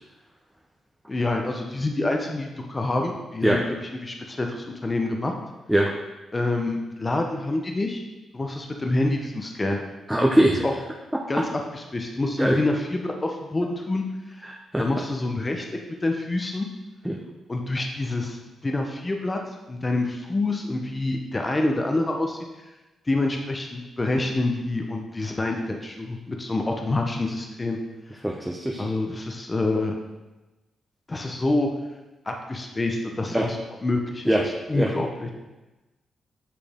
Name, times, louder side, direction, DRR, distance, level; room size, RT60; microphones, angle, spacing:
voice 1, 1.1-5.3 6.3-8.0 8.3-9.8 10.6-10.7 11.3-14.0 14.8-15.6 16.0-16.7 17.5-19.4 19.7-22.4 23.1-27.8 28.1-28.2 28.8-30.0 31.1-31.7 32.3-33.6 33.8-35.3, left 2 dB, 30° left, 2 dB, 0.8 m, -27 dB
voice 2, 10.1-10.6 12.4-12.6 14.5-14.8 17.0-17.2 28.2-28.8 33.3-33.5 34.3-34.4 34.7-34.9, right 1 dB, 5° right, -2 dB, 0.8 m, -21 dB
8.5 x 3.2 x 3.6 m, 1.1 s
supercardioid pair, 50°, 0 cm